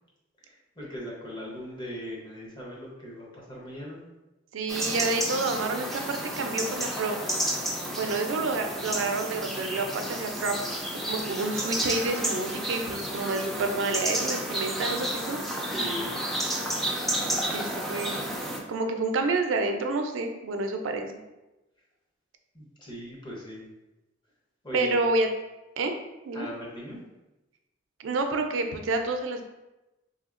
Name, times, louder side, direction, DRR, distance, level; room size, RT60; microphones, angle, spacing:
voice 1, 0.4-4.0 15.7-16.1 22.5-23.7 24.6-25.0 26.3-27.0, equal, 25° left, -4 dB, 0.7 m, -39 dB
voice 2, 4.5-7.2 8.0-10.6 11.0-15.4 17.2-18.3 18.7-21.2 24.7-25.3 25.8-25.9 26.3-26.5 28.0-29.4, right 3 dB, 80° right, 5 dB, 0.4 m, -29 dB
sound 1, 4.7-18.6, right 1 dB, ahead, 0.3 m, -31 dB
3.2 x 2.7 x 2.4 m, 1.0 s
head